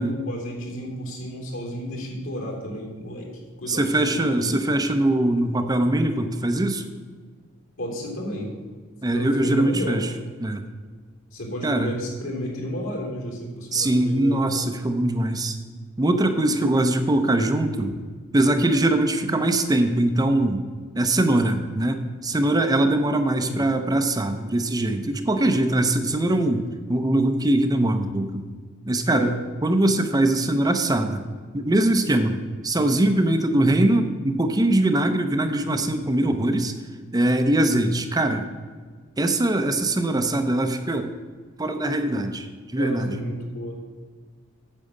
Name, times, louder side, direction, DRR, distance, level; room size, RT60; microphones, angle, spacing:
voice 1, 0.0-3.3 3.6-4.8 7.8-8.5 9.1-10.0 11.3-14.5 23.4-23.6 29.1-29.4 42.8-43.8, equal, 70° left, -1 dB, 3.3 m, -32 dB
voice 2, 3.7-6.8 9.0-10.1 10.4-10.6 11.6-11.9 13.7-15.6 16.0-18.0 18.3-20.6 20.9-28.5 28.9-29.3 29.6-31.2 31.5-32.4 32.6-36.7 37.1-38.5 39.2-41.1 41.6-42.5 42.7-43.2, right 1 dB, 20° right, 7 dB, 0.6 m, -22 dB
8.8 x 7.5 x 6.6 m, 1.5 s
head